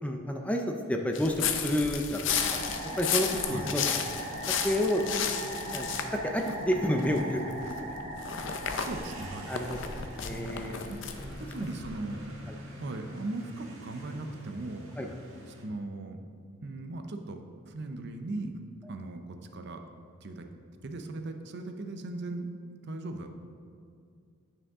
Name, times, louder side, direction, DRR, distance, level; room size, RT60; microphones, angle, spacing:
voice 1, 0.0-3.8 4.5-5.0 5.7-8.0 9.5-10.9 11.2-11.3 12.5-12.6 15.0-15.1, left 1 dB, 5° left, 3 dB, 0.5 m, -30 dB
sound 1, 1.1-7.2 7.6-11.9, left 8 dB, 65° left, 0.5 m, -33 dB
sound 2, 2.3-11.1, right 1 dB, 35° right, 1.2 m, -40 dB
sound 3, 8.7-15.6, equal, 75° right, 1.5 m, -46 dB
voice 2, 8.8-9.5 10.3-12.2 12.8-14.9 15.6-16.2 16.6-18.6 18.9-19.8 20.2-20.5 20.8-22.5 22.8-23.3, right 2 dB, 55° right, 6 dB, 0.6 m, -38 dB
9.7 x 5.5 x 3.6 m, 2.3 s
head